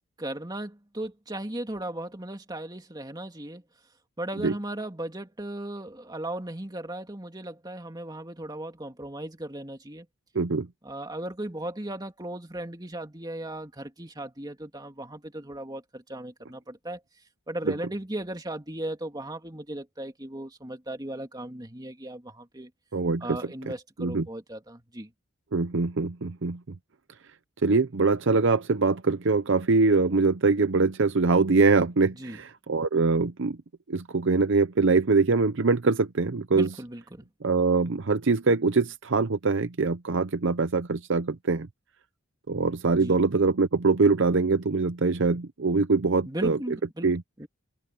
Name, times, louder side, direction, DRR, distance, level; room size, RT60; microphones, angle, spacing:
voice 1, 0.2-3.6 4.2-10.1 10.8-17.0 17.5-22.7 23.2-25.1 32.1-32.4 36.5-37.3 43.0-43.2 46.3-47.1 47.4-47.5, right 1 dB, 20° right, 2.6 m, -36 dB
voice 2, 10.3-10.7 17.7-17.8 22.9-23.4 24.0-24.3 25.5-26.6 27.6-33.6 33.9-36.7 37.4-41.7 42.5-46.6 47.0-47.2, right 4 dB, 60° right, 0.7 m, -23 dB
head